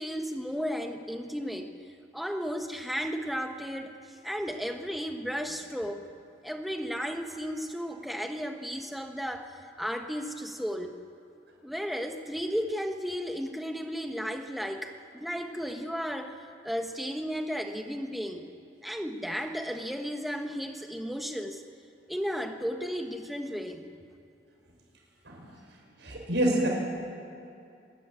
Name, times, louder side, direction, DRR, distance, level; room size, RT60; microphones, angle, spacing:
voice 1, 0.0-1.7 2.1-6.1 6.4-10.9 11.6-16.4 16.6-18.5 18.8-21.6 22.1-23.9, equal, ahead, 4 dB, 1.2 m, -34 dB
voice 2, 26.0-26.7, right 1 dB, 85° right, 0 dB, 5.5 m, -27 dB
25.5 x 12.0 x 9.8 m, 2.6 s
head